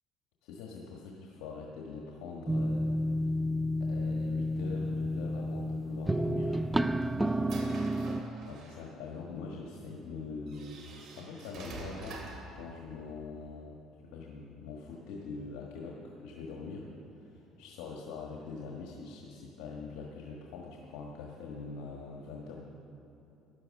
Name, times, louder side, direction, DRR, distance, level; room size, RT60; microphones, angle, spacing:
voice 1, 0.4-2.9 3.8-6.6 8.4-12.2 12.5-13.8 14.0-22.5, left 4 dB, 90° left, -1 dB, 1.5 m, -43 dB
sound 1, 2.5-8.2, equal, 10° right, 0.4 m, -30 dB
sound 2, 6.4-8.9 9.8-9.9 10.5-12.5, right 3 dB, 60° right, 3.2 m, -47 dB
15.5 x 11.0 x 6.4 m, 3.0 s
cardioid pair, 115°, 0 cm